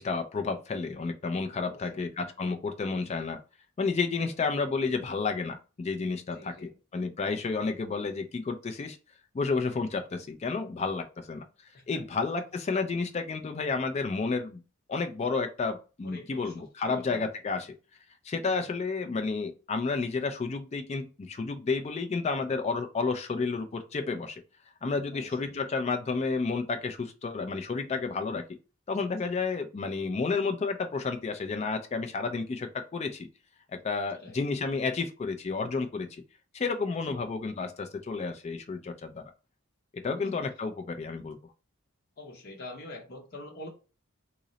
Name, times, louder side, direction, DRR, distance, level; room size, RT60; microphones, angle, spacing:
voice 1, 0.0-3.4 3.8-9.0 9.3-11.4 11.9-14.6 14.9-17.7 18.2-24.4 24.8-28.4 28.9-33.3 33.7-36.2 36.5-39.2 39.9-41.4, left 4 dB, 30° left, 0.3 m, -31 dB
voice 2, 1.6-2.1 4.2-4.3 6.3-6.8 11.7-12.0 16.0-17.2 18.4-18.6 25.1-25.5 29.1-29.4 34.1-34.4 37.0-37.2 40.0-40.5 42.2-43.7, left 1 dB, 45° left, 0.7 m, -46 dB
3.8 x 2.0 x 3.8 m
head